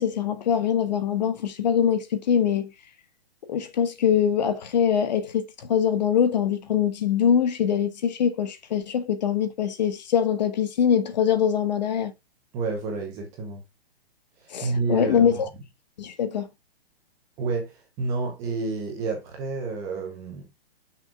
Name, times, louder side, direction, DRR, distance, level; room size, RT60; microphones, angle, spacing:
voice 1, 0.0-2.7 3.5-12.1 14.5-15.4 16.0-16.5, left 8 dB, 45° left, 1.1 m, -23 dB
voice 2, 12.5-13.6 14.4-15.3 17.4-20.5, right 3 dB, 10° right, 0.7 m, -30 dB
6.3 x 5.7 x 3.5 m
hypercardioid pair, 170°, 31 cm